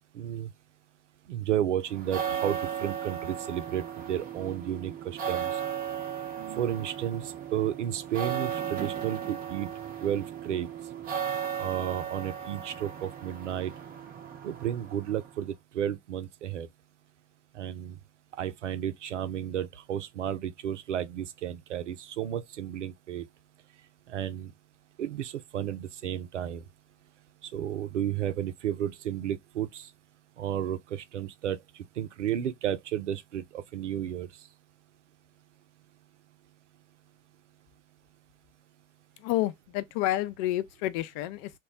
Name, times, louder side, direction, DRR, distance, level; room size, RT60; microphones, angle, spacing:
voice 1, 0.1-0.5 1.3-5.6 6.6-9.7 10.0-10.7 11.6-13.7 14.4-16.7 17.5-18.0 18.4-23.3 24.1-24.5 25.0-26.6 27.4-29.9 30.4-34.3, right 10 dB, 75° right, 0.5 m, -32 dB
sound 1, 1.9-15.4, right 9 dB, 25° right, 0.6 m, -36 dB
voice 2, 39.2-41.5, left 15 dB, 45° left, 0.4 m, -29 dB
2.3 x 2.0 x 3.7 m
figure-of-eight pair, 70°, 36 cm